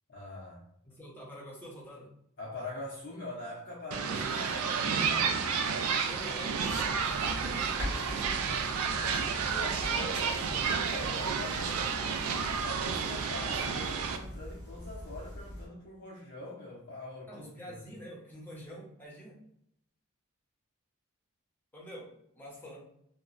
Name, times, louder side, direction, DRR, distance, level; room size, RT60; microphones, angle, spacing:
voice 1, 0.1-0.6 2.4-5.4 8.9-12.3 12.6-17.8, left 2 dB, 55° left, -5 dB, 0.6 m, -43 dB
voice 2, 0.8-2.1 5.9-8.6 17.3-19.4 21.7-22.8, equal, 10° left, -4 dB, 0.8 m, -46 dB
sound 1, 3.9-14.2, right 6 dB, 80° right, 0.3 m, -31 dB
sound 2, 6.6-15.7, equal, 15° right, 1.1 m, -43 dB
3.0 x 2.2 x 2.4 m, 0.73 s
head